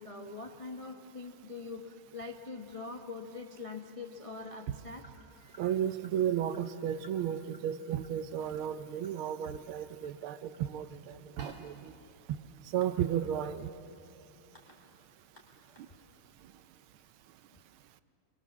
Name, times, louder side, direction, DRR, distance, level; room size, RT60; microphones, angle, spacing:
voice 1, 0.0-5.1 15.7-15.8 17.5-17.6, left 4 dB, 45° left, 3 dB, 0.4 m, -43 dB
sound 1, 4.0-4.2 5.4-5.8 6.1-6.3 7.5-7.6 8.2-10.4 10.8-10.9 11.1-13.6, right 4 dB, 60° right, 2.5 m, -55 dB
sound 2, 5.0-16.4, left 2 dB, 10° left, 4.0 m, -63 dB
voice 2, 5.6-11.9 12.3-12.4 12.7-13.7, right 10 dB, 75° right, 12 dB, 1.6 m, -33 dB
25.5 x 22.5 x 7.4 m, 2.7 s
omnidirectional pair, 2.4 m